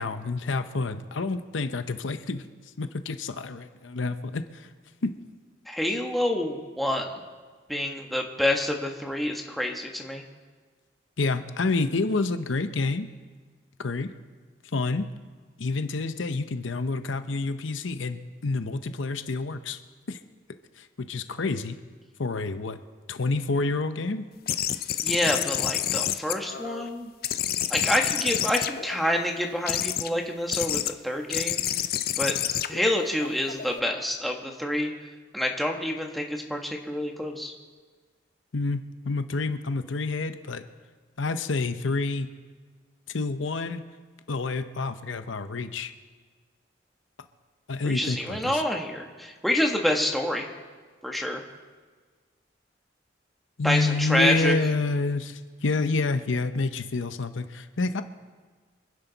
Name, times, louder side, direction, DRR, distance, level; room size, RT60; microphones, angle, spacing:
voice 1, 0.0-2.5 2.8-4.7 5.0-5.2 11.2-13.1 13.8-14.1 14.7-15.1 15.6-19.8 20.1-20.2 20.8-21.8 22.2-22.8 23.1-24.3 38.5-40.6 41.2-42.3 43.1-43.8 44.3-45.9 47.7-48.6 53.6-58.0, left 3 dB, 80° left, 10 dB, 0.8 m, -28 dB
voice 2, 5.7-7.1 7.7-10.2 25.0-27.1 27.7-31.6 32.2-32.3 32.7-34.9 35.3-37.5 47.8-50.4 51.0-51.4 53.6-54.5, left 1 dB, ahead, 1 dB, 1.3 m, -27 dB
sound 1, 24.5-26.9 27.2-29.2 29.6-30.1 30.5-30.9 31.3-33.8, left 11 dB, 50° left, 0.5 m, -29 dB
25.5 x 10.5 x 4.0 m, 1.5 s
head